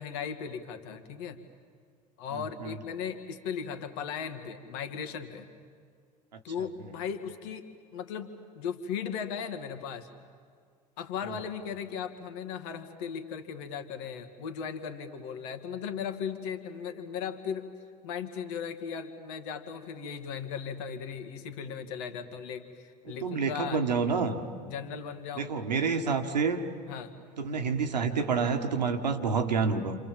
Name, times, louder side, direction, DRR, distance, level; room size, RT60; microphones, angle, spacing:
voice 1, 0.0-1.4 2.2-5.5 6.4-7.6 7.9-10.1 11.0-17.6 18.0-23.8 24.6-25.5 26.9-27.1, left 7 dB, 60° left, 7 dB, 2.2 m, -37 dB
voice 2, 2.3-2.8 6.3-6.4 6.8-6.9 11.3-11.4 23.1-24.4 25.3-26.6 27.4-30.0, right 5 dB, 85° right, 6 dB, 1.7 m, -28 dB
29.5 x 26.5 x 7.6 m, 2.1 s
hypercardioid pair, 75°, 21 cm